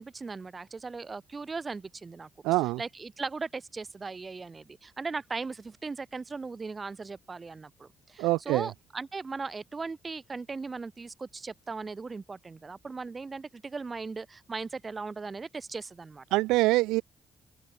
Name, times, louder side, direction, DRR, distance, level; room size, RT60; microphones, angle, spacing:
voice 1, 0.0-2.3 2.8-16.2, right 4 dB, 35° right, 7.5 m, -38 dB
voice 2, 2.4-2.8 8.2-8.7 16.3-17.0, right 20 dB, 70° right, 0.6 m, -24 dB
figure-of-eight pair, 40°, 0 cm